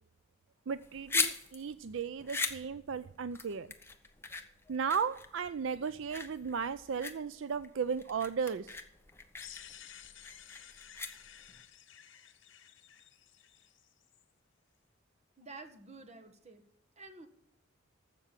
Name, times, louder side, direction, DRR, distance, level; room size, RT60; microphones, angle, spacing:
sound 1, 0.7-11.6, left 4 dB, 10° left, 1.0 m, -39 dB
voice 1, 0.7-3.7 4.7-8.8, right 6 dB, 65° right, 14 dB, 0.4 m, -35 dB
sound 2, 9.4-14.2, left 10 dB, 65° left, 1.4 m, -53 dB
voice 2, 15.4-16.6 17.0-17.3, right 3 dB, 35° right, 5 dB, 1.5 m, -50 dB
15.0 x 6.1 x 7.4 m, 0.76 s
head